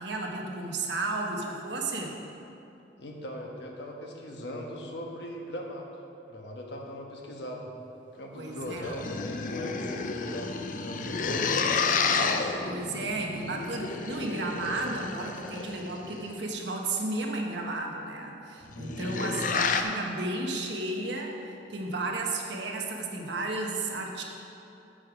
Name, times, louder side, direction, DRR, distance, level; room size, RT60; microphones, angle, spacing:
voice 1, 0.0-2.2 8.3-9.0 12.7-24.2, right 2 dB, 70° right, 0 dB, 1.2 m, -33 dB
voice 2, 3.0-5.9 6.3-7.7 8.1-11.5 18.6-19.4, left 1 dB, 65° left, 0 dB, 1.2 m, -39 dB
sound 1, 8.6-16.2 18.6-19.8, left 5 dB, 45° left, 0.5 m, -31 dB
8.8 x 7.6 x 5.0 m, 2.8 s
head